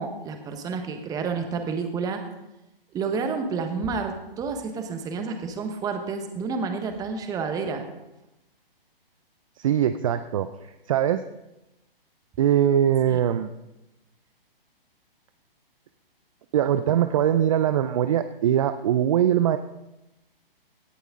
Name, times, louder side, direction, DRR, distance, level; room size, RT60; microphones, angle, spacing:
voice 1, 0.0-2.2 2.9-7.8 13.0-13.2, right 5 dB, 10° right, 6 dB, 1.1 m, -30 dB
voice 2, 9.6-10.5 10.9-11.2 12.4-13.5 16.5-19.6, right 10 dB, 35° right, 11 dB, 0.5 m, -21 dB
17.0 x 12.0 x 3.8 m, 0.95 s
hypercardioid pair, 145°, 29 cm